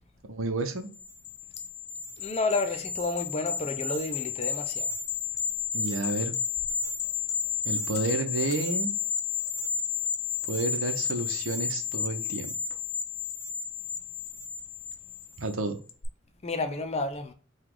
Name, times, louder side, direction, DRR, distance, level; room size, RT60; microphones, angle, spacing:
voice 1, 0.2-0.9 5.7-6.4 7.6-8.9 10.5-12.5 15.4-15.8, right 2 dB, 90° right, 0.8 m, -31 dB
sound 1, 0.9-15.5 15.9-16.0, left 7 dB, 90° left, 0.7 m, -32 dB
voice 2, 2.2-4.9 16.4-17.3, left 3 dB, 35° left, 0.6 m, -30 dB
4.9 x 2.4 x 3.7 m
head